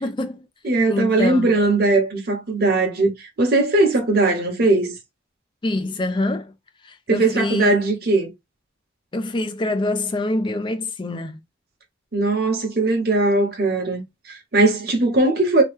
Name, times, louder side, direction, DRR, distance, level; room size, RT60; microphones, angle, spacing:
voice 1, 0.0-0.5 0.9-1.6 5.6-6.5 6.8-7.7 9.1-11.4, left 2 dB, 25° left, 0.4 m, -25 dB
voice 2, 0.6-4.9 7.1-8.3 12.1-15.6, right 2 dB, 50° right, 1.0 m, -19 dB
2.9 x 2.2 x 3.3 m
head